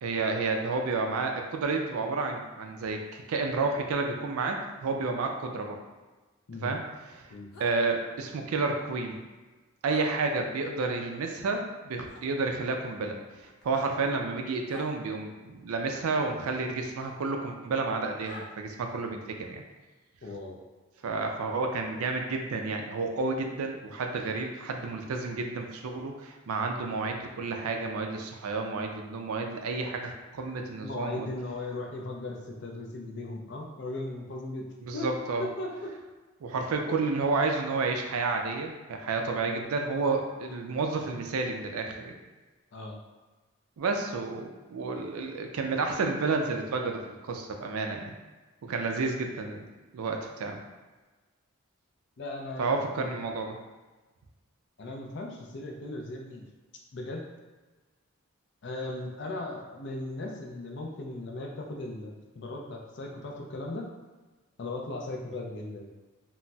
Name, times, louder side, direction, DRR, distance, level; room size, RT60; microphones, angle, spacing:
voice 1, 0.0-5.8 6.6-7.2 7.6-9.2 9.8-19.6 21.0-31.3 34.8-35.4 36.4-42.2 43.8-48.1 48.6-49.7 49.9-50.6 52.6-53.6, right 3 dB, 80° right, 3 dB, 0.4 m, -31 dB
sound 1, 7.5-7.7 9.8-10.1 12.0-12.2 13.6-13.9 14.7-14.9 17.0-17.1 18.2-18.4, left 2 dB, 85° left, 0.7 m, -46 dB
voice 2, 20.2-20.6 30.8-34.7 34.9-35.1 35.4-36.0 42.7-43.0 52.2-53.1 54.8-56.4 56.9-57.2 58.6-63.9 64.6-65.9, left 2 dB, 50° left, 1 dB, 0.4 m, -37 dB
3.9 x 2.0 x 2.2 m, 1.3 s
head